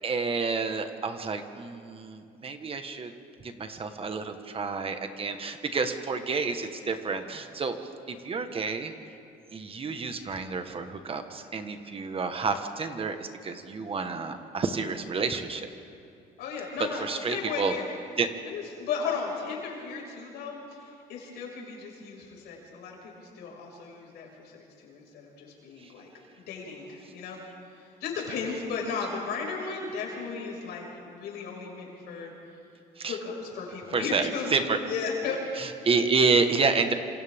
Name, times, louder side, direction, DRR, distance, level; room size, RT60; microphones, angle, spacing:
voice 1, 0.0-3.1 3.4-7.7 8.1-8.9 9.5-15.7 17.0-17.7 18.2-18.3 33.0-33.2 33.9-34.8 35.6-36.9, right 4 dB, 35° right, 7 dB, 1.4 m, -29 dB
voice 2, 16.4-17.9 18.4-26.1 26.5-27.4 27.7-32.3 33.0-34.5 34.8-35.4, left 5 dB, 80° left, -1 dB, 5.8 m, -35 dB
27.5 x 27.0 x 3.7 m, 2.5 s
cardioid pair, 110°, 17 cm